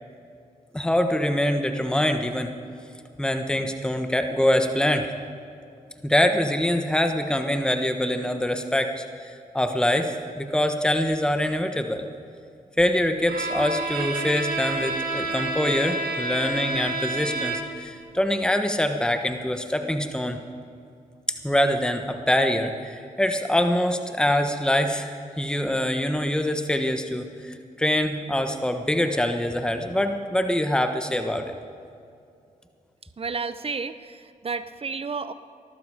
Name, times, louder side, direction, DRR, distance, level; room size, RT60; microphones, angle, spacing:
voice 1, 0.7-2.5 3.2-5.1 6.0-12.1 12.8-20.4 21.3-31.5, left 1 dB, 5° left, 6 dB, 1.2 m, -24 dB
Bowed string instrument, 13.3-17.9, right 2 dB, 80° right, 1.9 m, -29 dB
voice 2, 33.2-35.3, right 4 dB, 40° right, 12 dB, 0.8 m, -31 dB
19.0 x 12.0 x 5.0 m, 2.5 s
cardioid pair, 55°, 15 cm